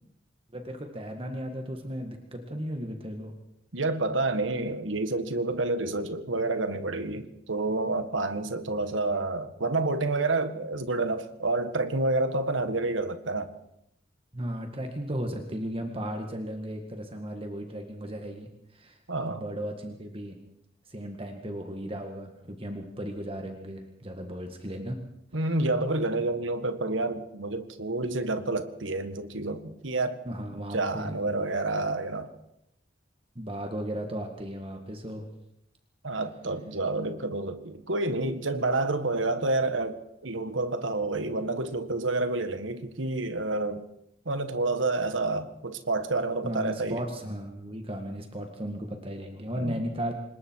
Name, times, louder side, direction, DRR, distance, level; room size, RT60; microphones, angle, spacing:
voice 1, 0.5-3.3 14.3-20.4 20.9-25.0 30.3-31.6 33.4-35.3 46.4-50.2, equal, 30° right, 1.9 m, -36 dB
voice 2, 3.7-13.5 19.1-19.4 25.3-30.2 30.7-32.3 36.0-43.8 44.2-47.0 49.5-49.8, right 2 dB, 80° right, 1.7 m, -29 dB
26.5 x 21.0 x 4.7 m
head